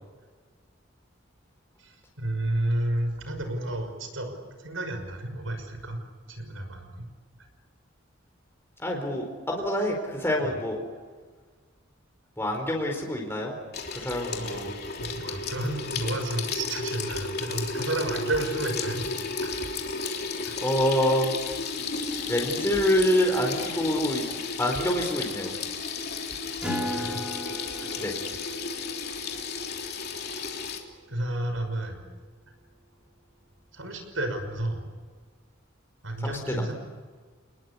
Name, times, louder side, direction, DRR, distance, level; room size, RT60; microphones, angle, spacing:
voice 1, 1.8-4.3 4.6-6.0 6.3-7.1 14.3-19.1 19.4-19.6 20.4-20.6 26.8-27.2 27.8-27.9 31.1-32.0 33.7-34.8 36.0-36.7, right 1 dB, 90° right, 7 dB, 6.0 m, -31 dB
voice 2, 8.8-10.8 12.4-13.5 13.9-14.7 20.6-21.3 22.3-25.5 28.0-28.1 36.2-36.7, equal, 10° left, 0 dB, 4.4 m, -26 dB
Water tap faucet / Sink (filling or washing), 13.7-30.8, left 4 dB, 55° left, 3.3 m, -33 dB
Acoustic guitar, 26.6-31.6, equal, 5° right, 4.0 m, -38 dB
29.0 x 20.5 x 8.6 m, 1.5 s
head